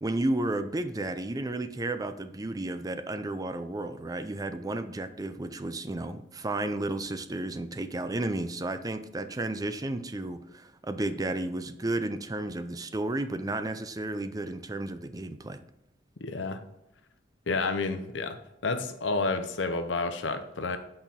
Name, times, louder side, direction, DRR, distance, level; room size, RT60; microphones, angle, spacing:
voice 1, 0.0-15.6, right 2 dB, 20° right, 10 dB, 0.5 m, -32 dB
voice 2, 16.2-16.6 17.5-18.4 18.6-20.8, left 3 dB, 85° left, 8 dB, 0.8 m, -30 dB
8.0 x 4.3 x 3.6 m, 0.90 s
head